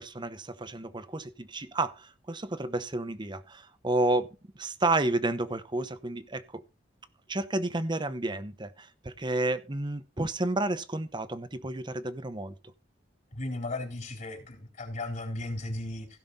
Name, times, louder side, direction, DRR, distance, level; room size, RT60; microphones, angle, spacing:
voice 1, 0.0-4.3 4.6-6.6 7.3-12.5, right 2 dB, 25° right, 0.9 m, -31 dB
voice 2, 13.3-16.1, left 2 dB, 45° left, 3.9 m, -35 dB
16.5 x 5.9 x 4.2 m
head